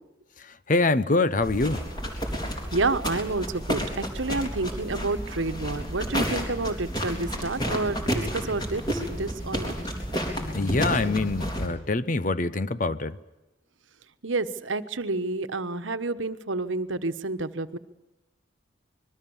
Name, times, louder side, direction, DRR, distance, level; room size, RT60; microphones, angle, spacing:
voice 1, 0.7-1.9 10.5-13.2, left 3 dB, 40° left, 0.8 m, -24 dB
sound 1, 1.4-11.7, equal, 20° left, 3.8 m, -31 dB
voice 2, 2.7-9.7 14.2-17.8, right 3 dB, 80° right, 1.2 m, -29 dB
26.5 x 21.5 x 7.2 m
head